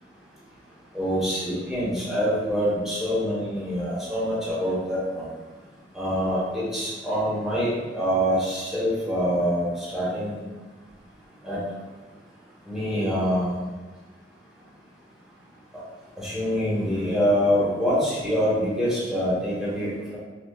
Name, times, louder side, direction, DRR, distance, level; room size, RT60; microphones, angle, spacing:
voice 1, 0.9-5.3 5.9-10.4 11.4-11.6 12.6-13.6 16.2-20.2, equal, ahead, -9 dB, 1.1 m, -25 dB
5.5 x 2.2 x 2.2 m, 1.3 s
head